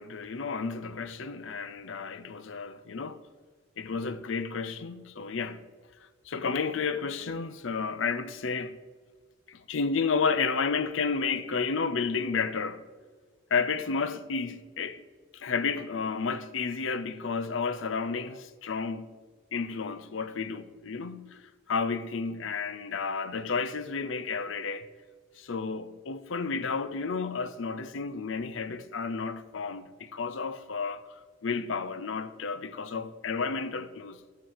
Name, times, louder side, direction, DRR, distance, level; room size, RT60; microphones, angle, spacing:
voice 1, 0.0-3.2 3.8-5.6 6.3-8.8 9.5-12.8 13.5-15.0 15.3-19.1 19.5-21.4 21.7-24.9 25.4-34.2, left 5 dB, 70° left, 0.6 m, -31 dB
14.0 x 5.6 x 5.6 m
head